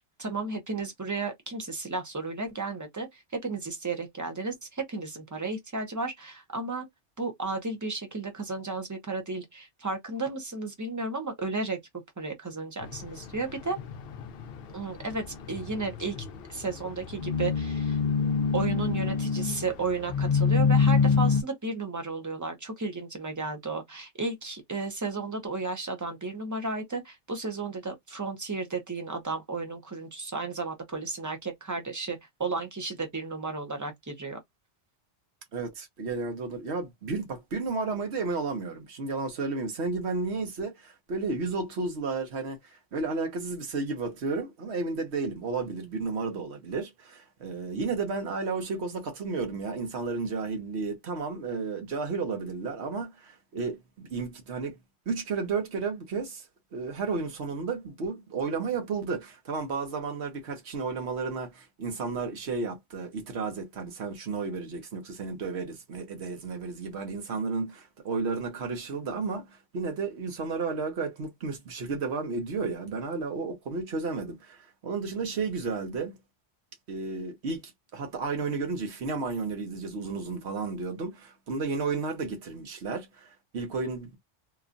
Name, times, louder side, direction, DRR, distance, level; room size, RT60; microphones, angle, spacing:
voice 1, 0.0-6.8 7.2-11.8 12.2-13.8 14.7-16.2 16.5-18.0 18.5-34.4, right 3 dB, 20° right, 0.6 m, -33 dB
sound 1, 12.8-21.4, left 5 dB, 60° left, 0.7 m, -27 dB
voice 2, 35.5-54.8 55.1-56.5 56.7-76.2 76.9-84.2, right 4 dB, 65° right, 1.1 m, -32 dB
2.9 x 2.3 x 2.5 m
omnidirectional pair, 1.2 m